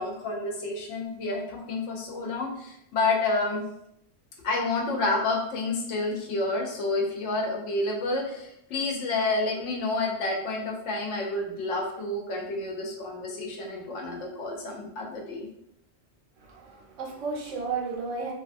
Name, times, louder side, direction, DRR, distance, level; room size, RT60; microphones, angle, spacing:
voice 1, 0.0-3.6 4.4-15.5, left 2 dB, 75° left, 0 dB, 0.9 m, -29 dB
voice 2, 16.4-18.3, right 4 dB, 75° right, -1 dB, 1.0 m, -33 dB
2.6 x 2.3 x 2.4 m, 0.77 s
omnidirectional pair, 1.3 m